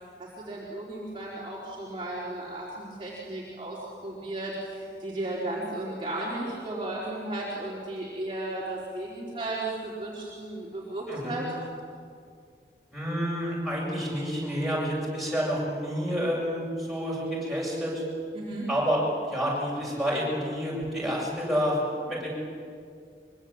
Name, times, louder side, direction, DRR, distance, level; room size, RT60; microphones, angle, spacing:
voice 1, 0.2-11.5 18.3-18.7, right 2 dB, 25° right, -6 dB, 4.2 m, -35 dB
voice 2, 12.9-18.0 18.7-22.3, equal, ahead, -5 dB, 7.8 m, -29 dB
24.5 x 24.0 x 8.9 m, 2.3 s
head